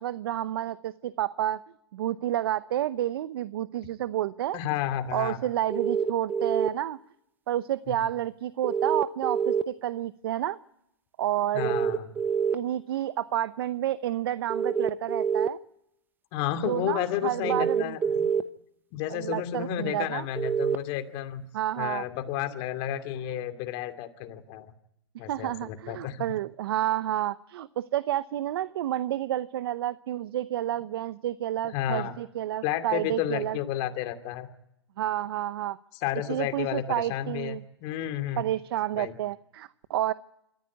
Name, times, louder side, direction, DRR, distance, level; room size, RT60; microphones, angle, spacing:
voice 1, 0.0-1.6 1.9-4.6 5.1-7.0 7.5-10.6 11.2-11.8 12.5-15.6 16.6-17.9 19.1-20.2 21.5-22.0 25.3-33.6 35.0-35.8 36.3-37.6 38.4-40.1, right 12 dB, 60° right, 15 dB, 0.8 m, -30 dB
voice 2, 4.5-5.4 7.9-8.0 11.5-12.1 16.3-18.3 18.9-21.4 21.8-24.7 25.2-26.2 31.7-32.2 32.6-34.5 36.0-38.4 38.9-39.1, left 11 dB, 40° left, 7 dB, 2.6 m, -31 dB
sound 1, 5.7-6.7 8.6-9.6 11.6-12.5 14.5-15.5 17.4-18.4 20.4-20.8, right 7 dB, 15° right, 0.9 m, -26 dB
27.0 x 14.5 x 9.6 m, 0.82 s
hypercardioid pair, 130°, 14 cm